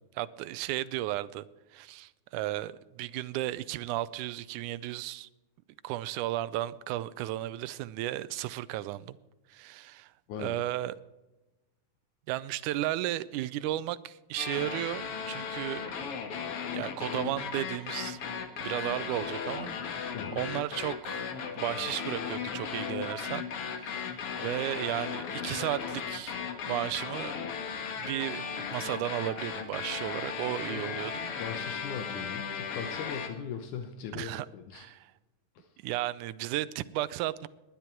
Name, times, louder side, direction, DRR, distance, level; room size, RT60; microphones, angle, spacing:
voice 1, 0.2-1.4 1.7-5.3 5.8-9.2 9.5-10.1 10.4-11.0 12.3-15.8 16.7-18.2 18.6-21.3 21.5-23.5 23.7-26.4 26.7-27.4 28.0-31.3 34.1-34.5 34.7-35.1 35.8-37.5, right 15 dB, 80° right, 2.1 m, -34 dB
voice 2, 10.3-10.6 12.5-12.6 16.5-16.6 20.1-20.4 30.6-30.9 31.4-34.9 35.6-35.7, left 7 dB, 80° left, 2.5 m, -39 dB
sound 1, 14.4-33.3, left 6 dB, 55° left, 2.2 m, -36 dB
19.5 x 10.5 x 4.5 m
omnidirectional pair, 3.5 m